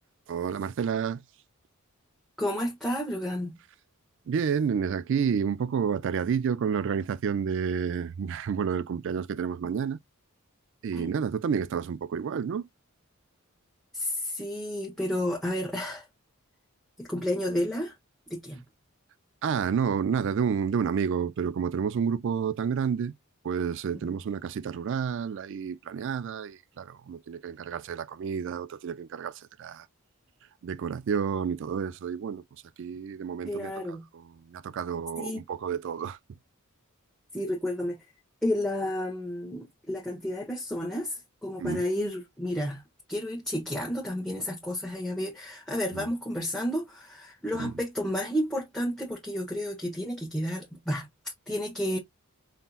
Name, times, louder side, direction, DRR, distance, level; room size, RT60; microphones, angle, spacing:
voice 1, 0.3-1.2 4.3-10.0 10.8-12.7 19.4-23.1 23.4-29.9 30.6-32.4 32.8-33.7 34.1-36.2 41.6-41.8 45.9-46.1 47.6-47.7, right 7 dB, 55° right, 0.3 m, -30 dB
voice 2, 2.4-3.5 10.9-11.1 13.9-16.1 17.0-18.0 18.3-18.6 24.0-24.1 33.4-34.1 35.2-35.4 37.3-38.0 38.4-42.8 43.1-52.0, left 1 dB, 5° left, 1.1 m, -31 dB
5.4 x 2.8 x 2.4 m
head